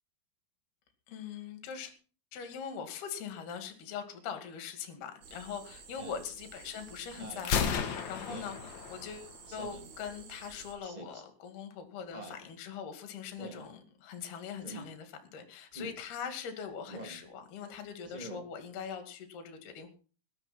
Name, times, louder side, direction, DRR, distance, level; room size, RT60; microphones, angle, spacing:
voice 1, 1.1-1.9 2.3-19.9, left 7 dB, 55° left, 6 dB, 4.0 m, -42 dB
sound 1, 5.2-10.8, right 5 dB, 65° right, 5.2 m, -51 dB
Speech synthesizer, 5.9-6.3 7.1-7.5 8.3-8.6 9.5-9.9 10.8-11.2 12.1-12.4 13.4-13.7 14.6-14.9 15.7-16.0 16.9-17.2 18.0-18.4, right 2 dB, 15° right, 1.4 m, -45 dB
Gunshot gunfire, 7.4-9.4, left 7 dB, 80° left, 1.6 m, -33 dB
20.0 x 11.0 x 4.4 m, 0.38 s
omnidirectional pair, 5.8 m